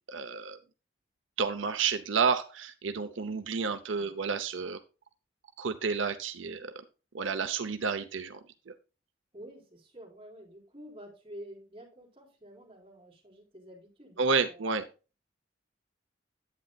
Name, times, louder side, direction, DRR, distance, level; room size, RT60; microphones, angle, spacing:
voice 1, 0.1-0.6 1.4-4.8 5.6-6.7 7.1-8.4 8.7-8.8 14.2-14.9, right 5 dB, 90° right, 8 dB, 0.7 m, -30 dB
voice 2, 9.3-14.7, equal, 25° right, -2 dB, 4.1 m, -49 dB
11.0 x 8.6 x 2.3 m, 0.32 s
head